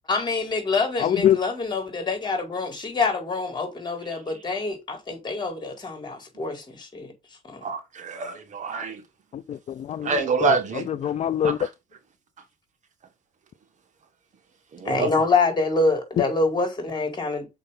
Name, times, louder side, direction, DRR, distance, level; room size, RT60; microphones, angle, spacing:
voice 1, 0.1-7.1 7.4-7.6 14.8-17.5, left 3 dB, 25° left, 4.6 m, -26 dB
voice 2, 1.0-1.4 9.3-11.6, left 10 dB, 40° left, 0.5 m, -25 dB
voice 3, 7.6-9.0 10.0-10.9 11.4-11.7 14.7-15.1, right 5 dB, 45° right, 1.7 m, -26 dB
6.3 x 5.6 x 5.4 m
cardioid pair, 110°, 17 cm